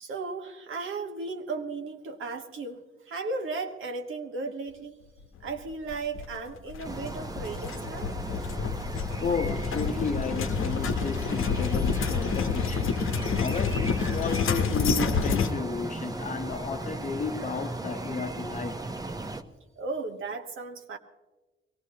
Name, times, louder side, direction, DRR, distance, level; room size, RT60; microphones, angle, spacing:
voice 1, 0.0-2.8 3.1-5.0 5.4-8.1 19.8-21.0, right 3 dB, 75° right, 1.4 m, -35 dB
sound 1, 5.9-15.5, left 6 dB, 80° left, 1.0 m, -28 dB
sound 2, 6.8-19.4, right 2 dB, 15° right, 0.8 m, -36 dB
voice 2, 9.2-18.8, left 4 dB, 35° left, 0.9 m, -33 dB
23.0 x 18.0 x 2.9 m
wide cardioid pair, 135°, 21 cm